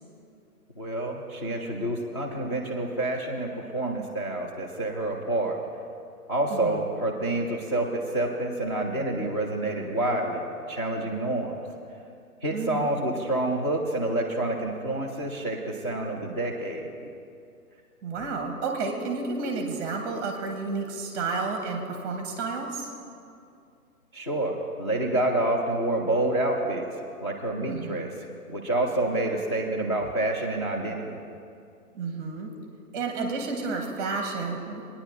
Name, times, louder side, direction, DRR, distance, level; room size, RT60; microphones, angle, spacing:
voice 1, 0.8-5.6 6.3-11.6 12.4-15.6 15.8-16.9 24.1-26.9 27.2-28.1 28.5-31.2, right 2 dB, 20° left, -7 dB, 0.4 m, -28 dB
voice 2, 6.5-6.9 12.5-13.0 18.0-22.9 27.7-28.1 31.9-32.5 32.9-34.8, right 4 dB, 15° right, 3 dB, 0.8 m, -31 dB
23.5 x 9.6 x 2.5 m, 2.5 s
figure-of-eight pair, 135°, 44 cm